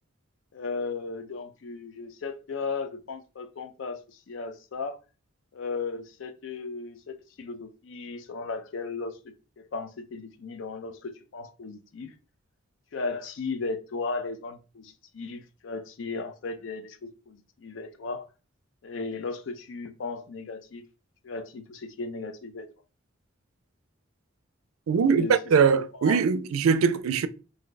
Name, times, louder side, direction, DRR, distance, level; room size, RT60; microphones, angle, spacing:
voice 1, 0.5-5.0 5.5-9.2 9.6-12.1 12.9-18.3 18.8-20.8 21.2-22.7 24.9-25.4 25.9-26.2, left 4 dB, 65° left, 0.4 m, -36 dB
voice 2, 24.9-27.3, right 6 dB, 90° right, 0.4 m, -22 dB
2.6 x 2.2 x 3.8 m
head